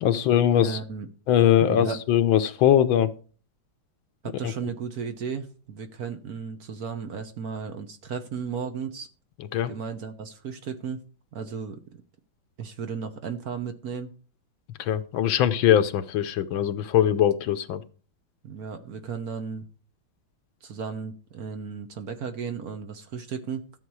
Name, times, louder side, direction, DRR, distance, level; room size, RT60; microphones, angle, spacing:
voice 1, 0.0-0.8 1.3-3.1 9.5-9.7 14.8-17.8, left 10 dB, 80° left, 11 dB, 1.6 m, -21 dB
voice 2, 0.5-1.1 1.7-2.0 4.2-9.1 9.7-11.0 11.3-11.8 12.6-14.1 18.4-19.7 20.6-23.6, right 6 dB, 55° right, 8 dB, 1.3 m, -34 dB
13.5 x 7.8 x 4.8 m, 0.41 s
omnidirectional pair, 2.2 m